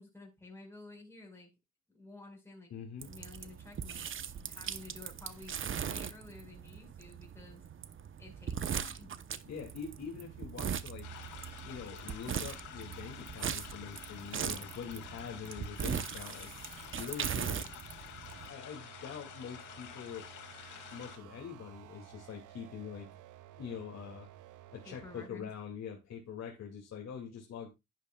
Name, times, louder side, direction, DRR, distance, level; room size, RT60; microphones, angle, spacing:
voice 1, 0.0-1.5 1.9-2.7 3.1-4.0 4.5-7.6 8.2-9.1 24.8-25.5, left 3 dB, 10° left, 4.7 m, -52 dB
voice 2, 2.7-3.1 9.4-11.1 11.6-16.5 17.0-17.7 18.5-20.2 20.9-23.1 23.6-24.3 24.7-27.7, left 7 dB, 60° left, 2.3 m, -44 dB
sound 1, 3.0-18.5, right 8 dB, 40° right, 0.8 m, -40 dB
sound 2, 11.0-21.2, left 9 dB, 85° left, 2.3 m, -49 dB
sound 3, 18.2-25.3, right 13 dB, 80° right, 0.8 m, -54 dB
10.5 x 10.5 x 2.3 m
cardioid pair, 90°, 30 cm